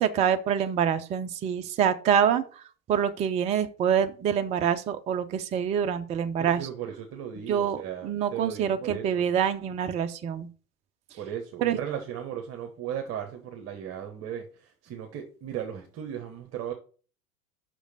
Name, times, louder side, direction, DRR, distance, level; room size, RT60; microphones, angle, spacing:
voice 1, 0.0-6.6 7.5-10.5 11.6-11.8, right 8 dB, 15° right, 0.4 m, -26 dB
voice 2, 6.4-9.3 11.1-16.7, right 9 dB, 35° right, 1.1 m, -36 dB
6.1 x 5.0 x 6.5 m
figure-of-eight pair, 85°, 46 cm